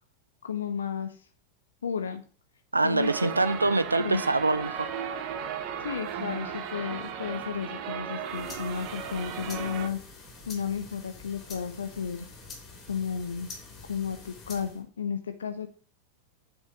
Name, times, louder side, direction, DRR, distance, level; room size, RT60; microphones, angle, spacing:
voice 1, 0.4-1.3 1.8-2.2 2.8-3.3 4.0-4.2 5.8-10.0 10.5-12.3 12.9-13.5 13.9-15.7, left 7 dB, 70° left, 0.7 m, -33 dB
voice 2, 2.7-4.9, right 2 dB, 80° right, 0.7 m, -25 dB
sound 1, 3.0-9.9, right 8 dB, 40° right, 1.1 m, -36 dB
sound 2, 8.1-14.8, left 3 dB, 25° left, 3.4 m, -46 dB
9.0 x 5.5 x 6.1 m
figure-of-eight pair, 90°, 0 cm